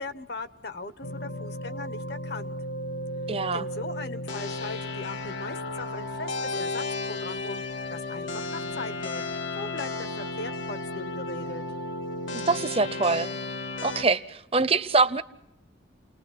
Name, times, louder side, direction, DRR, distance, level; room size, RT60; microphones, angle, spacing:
voice 1, 0.0-2.6 3.5-9.2 9.6-11.6, left 3 dB, 55° left, 1.1 m, -39 dB
sound 1, 1.0-14.0, left 2 dB, 80° left, 1.4 m, -34 dB
voice 2, 3.3-3.6 12.3-13.3 13.8-15.2, right 3 dB, 30° right, 0.7 m, -24 dB
29.5 x 20.0 x 5.9 m
head